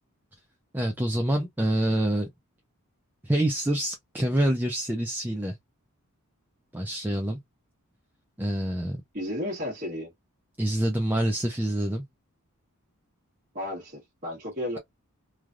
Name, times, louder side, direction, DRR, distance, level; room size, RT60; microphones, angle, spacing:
voice 1, 0.7-2.3 3.2-5.5 6.7-7.4 8.4-9.0 10.6-12.0, right 1 dB, 10° right, 0.4 m, -26 dB
voice 2, 9.1-10.1 13.5-14.8, left 1 dB, 35° right, 1.2 m, -33 dB
3.2 x 2.2 x 2.4 m
head